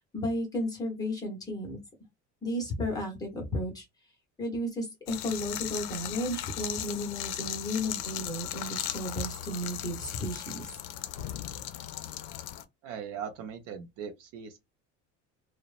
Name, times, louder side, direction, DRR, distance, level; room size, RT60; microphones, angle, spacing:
voice 1, 0.1-1.8 2.4-3.8 4.4-10.7, left 1 dB, 10° left, 0.8 m, -33 dB
sound 1, 5.1-12.6, left 12 dB, 70° left, 0.5 m, -37 dB
voice 2, 12.8-14.6, right 7 dB, 55° right, 0.5 m, -39 dB
2.9 x 2.1 x 2.4 m
cardioid pair, 165°, 30 cm